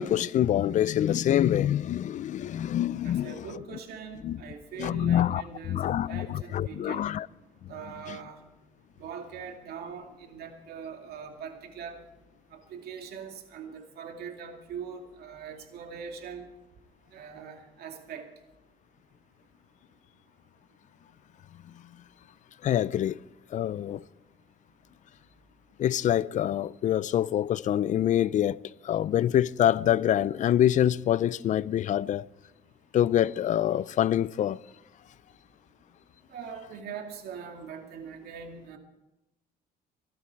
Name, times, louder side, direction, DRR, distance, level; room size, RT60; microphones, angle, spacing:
voice 1, 0.0-3.5 4.2-4.4 4.8-5.4 5.7-7.3 7.6-7.7 8.1-8.2 22.6-23.2 23.5-24.0 25.8-32.3 32.9-34.6, left 11 dB, 45° left, 0.4 m, -25 dB
voice 2, 3.0-7.1 7.7-8.4 9.0-12.0 12.5-16.5 17.1-18.3 36.3-38.8, right 6 dB, 70° right, 2.4 m, -42 dB
23.0 x 12.0 x 4.6 m
cardioid pair, 110°, 17 cm